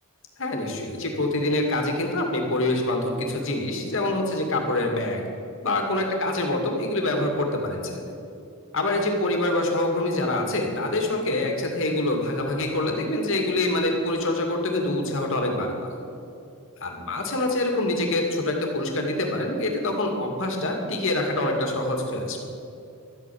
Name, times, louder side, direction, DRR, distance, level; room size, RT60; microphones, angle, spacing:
voice 1, 0.4-5.2 5.6-8.0 8.7-16.0 16.8-22.4, left 2 dB, 65° left, 2 dB, 2.3 m, -25 dB
12.5 x 8.8 x 8.6 m, 2.7 s
head